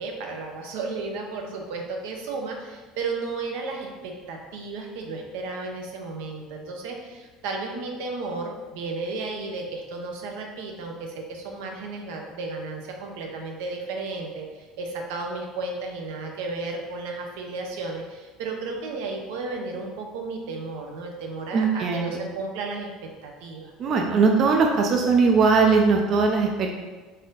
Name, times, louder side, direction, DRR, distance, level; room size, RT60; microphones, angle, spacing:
voice 1, 0.0-22.9 23.2-23.7, right 3 dB, 85° right, 2 dB, 0.7 m, -33 dB
voice 2, 21.5-22.2 23.8-26.7, right 4 dB, 40° right, 2 dB, 0.4 m, -20 dB
4.1 x 2.6 x 3.8 m, 1.3 s
cardioid pair, 140°, 0 cm